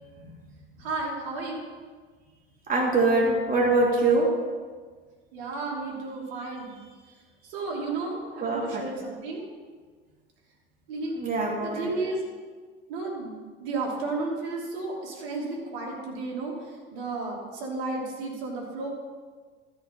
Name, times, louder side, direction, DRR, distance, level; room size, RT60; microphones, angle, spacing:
voice 1, 0.8-1.6 5.3-7.1 7.4-9.5 10.9-11.2 11.6-12.2 12.9-13.3 13.6-18.9, right 3 dB, 65° right, -2 dB, 2.9 m, -33 dB
voice 2, 2.7-4.3 8.4-8.8 11.2-11.9, right 2 dB, 30° right, -3 dB, 2.8 m, -23 dB
13.5 x 5.7 x 5.6 m, 1.5 s
hypercardioid pair, 75°, 30 cm